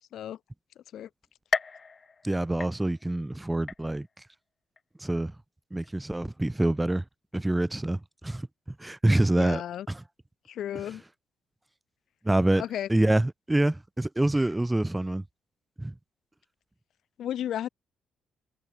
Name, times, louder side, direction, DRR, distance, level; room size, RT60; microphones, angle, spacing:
sound 1, 1.5-3.2 3.7-4.3 4.8-4.9 5.8-5.9, left 4 dB, 35° left, 0.4 m, -35 dB
voice 1, 2.2-4.1 5.0-5.3 5.7-7.0 7.3-8.5 8.8-9.6 9.9-10.0 12.2-12.6 12.9-15.2 15.8-15.9, right 1 dB, 10° right, 0.7 m, -26 dB
voice 2, 9.4-9.9 10.5-11.0 12.6-12.9 17.2-17.7, left 11 dB, 70° left, 0.8 m, -33 dB
cardioid pair, 90°, 0 cm